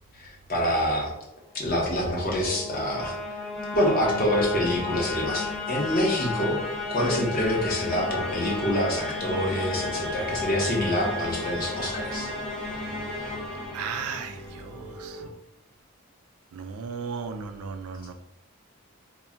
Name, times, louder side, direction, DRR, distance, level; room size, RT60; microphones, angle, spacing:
voice 1, 0.5-1.1 1.5-3.1 3.7-6.6 6.9-12.3, equal, 40° left, -3 dB, 0.7 m, -26 dB
sound 1, 1.5-14.6, left 3 dB, 5° left, 0.6 m, -33 dB
sound 2, 7.8-15.3, right 1 dB, 45° right, 0.7 m, -43 dB
voice 2, 13.7-15.2 16.5-18.1, right 5 dB, 90° right, 8 dB, 0.3 m, -35 dB
2.2 x 2.1 x 3.7 m, 0.89 s
head